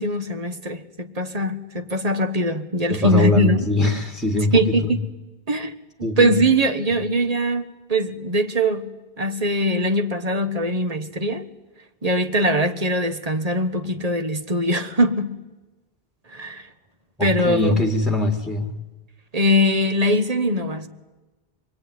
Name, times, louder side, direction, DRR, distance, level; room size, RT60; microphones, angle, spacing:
voice 1, 0.0-3.7 4.5-5.0 5.5-5.7 6.2-8.9 9.2-11.4 12.0-15.3 16.3-16.7 17.2-17.8 19.3-20.9, equal, 40° right, 1.5 m, -21 dB
voice 2, 2.9-5.0 6.0-6.4 17.2-18.7, left 2 dB, ahead, 1.9 m, -22 dB
26.0 x 22.0 x 9.6 m
omnidirectional pair, 1.0 m